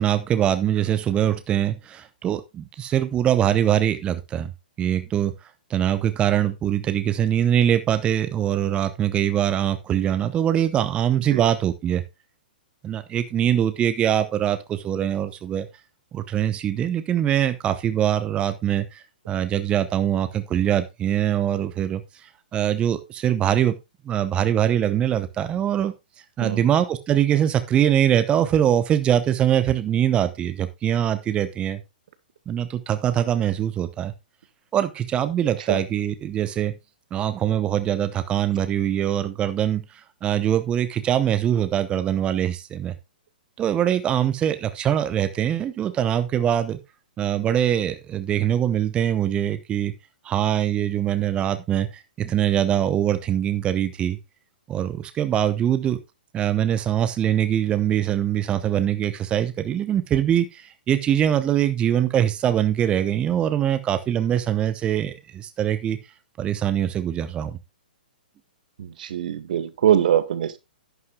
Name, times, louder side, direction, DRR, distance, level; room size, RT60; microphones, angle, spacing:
voice 1, 0.0-4.5 4.8-12.0 12.8-15.7 16.1-23.8 24.0-25.9 26.4-31.8 32.5-34.1 34.7-36.7 37.1-42.9 43.6-46.8 47.2-49.9 50.2-54.2 54.7-56.0 56.3-66.0 66.4-67.6, right 10 dB, 20° right, 0.8 m, -23 dB
voice 2, 68.8-70.6, right 10 dB, 60° right, 1.1 m, -22 dB
11.0 x 9.6 x 2.3 m
figure-of-eight pair, 120°, 5 cm